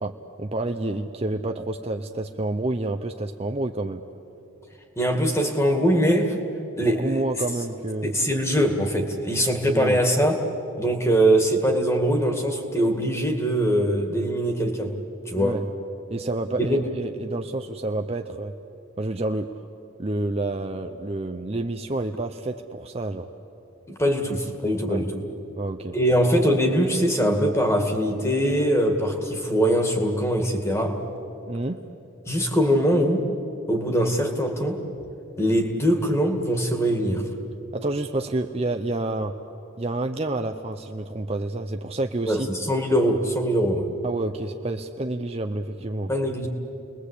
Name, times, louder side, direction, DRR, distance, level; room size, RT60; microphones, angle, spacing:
voice 1, 0.0-4.0 6.8-8.1 9.7-10.0 15.3-15.6 16.1-18.5 19.0-19.5 20.0-23.3 24.9-25.1 25.6-26.0 31.5-31.8 37.7-39.3 39.8-42.5 44.0-46.1, right 2 dB, 30° right, 6 dB, 0.6 m, -29 dB
voice 2, 5.0-6.4 6.8-7.2 8.0-10.4 10.8-15.0 15.3-15.6 16.6-16.8 23.9-25.2 25.9-31.0 32.3-33.3 33.7-34.8 35.4-37.3 42.3-43.9 46.1-46.5, equal, 15° left, 3 dB, 2.1 m, -22 dB
30.0 x 21.0 x 8.4 m, 2.9 s
head